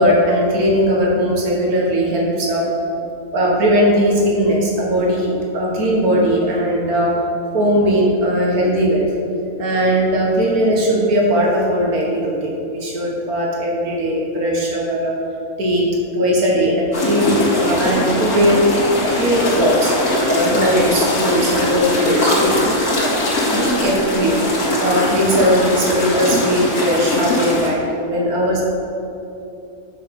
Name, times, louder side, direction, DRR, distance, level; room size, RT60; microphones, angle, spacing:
voice 1, 0.0-2.6 3.3-7.1 7.5-9.1 9.6-15.1 15.6-15.9 16.1-19.9 20.3-22.6 23.5-24.4 24.8-27.8 28.1-28.6, equal, 80° right, -3 dB, 1.8 m, -18 dB
sound 1, 16.9-27.7, left 1 dB, 80° left, 2.4 m, -20 dB
7.6 x 5.9 x 5.2 m, 2.7 s
omnidirectional pair, 1.5 m